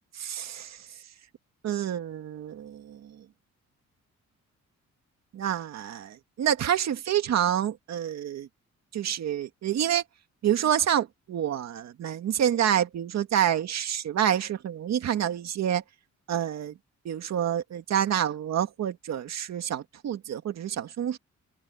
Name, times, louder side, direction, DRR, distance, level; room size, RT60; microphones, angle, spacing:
voice 1, 0.2-0.8 1.6-3.1 5.3-8.5 8.9-10.0 10.4-15.8 16.3-16.7 17.0-21.2, right 10 dB, 65° right, 2.2 m, -28 dB
open air
wide cardioid pair, 180°, 29 cm